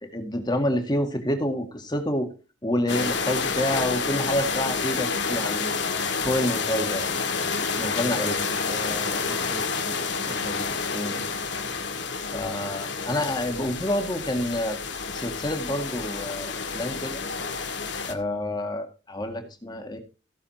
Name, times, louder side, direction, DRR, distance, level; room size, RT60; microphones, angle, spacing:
voice 1, 0.0-2.3 2.6-5.8 6.2-7.1 7.8-8.3 10.9-11.2 12.3-14.8 15.1-17.2 18.1-20.0, left 1 dB, 25° left, 5 dB, 2.0 m, -28 dB
sound 1, 2.9-18.1, left 5 dB, 65° left, 1.8 m, -29 dB
voice 2, 7.8-10.0 10.3-10.8 11.8-11.9, equal, 10° right, 4 dB, 1.5 m, -41 dB
16.0 x 6.9 x 4.3 m, 0.33 s
head